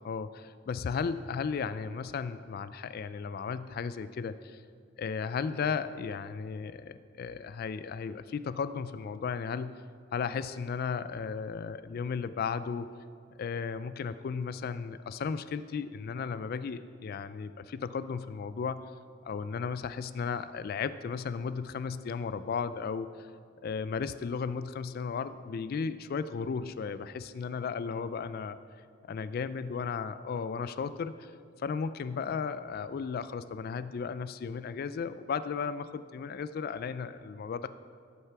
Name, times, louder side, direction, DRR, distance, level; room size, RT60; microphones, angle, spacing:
voice 1, 0.0-4.6 5.0-9.7 10.1-12.9 13.4-18.8 19.2-23.3 23.6-28.6 29.1-31.3 31.6-37.7, left 5 dB, 50° left, 13 dB, 0.3 m, -35 dB
13.0 x 6.7 x 5.8 m, 2.2 s
head